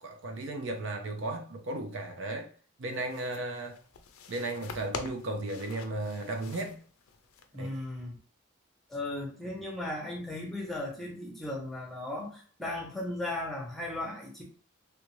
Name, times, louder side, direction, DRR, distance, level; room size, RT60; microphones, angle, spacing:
voice 1, 0.0-2.5 2.8-3.8 4.3-6.8 7.6-7.7, right 2 dB, 60° right, 0.5 m, -35 dB
sound 1, 2.9-7.9, left 4 dB, 90° left, 0.5 m, -46 dB
voice 2, 7.5-8.2 8.9-14.4, left 1 dB, ahead, 0.8 m, -36 dB
3.3 x 2.6 x 3.0 m
head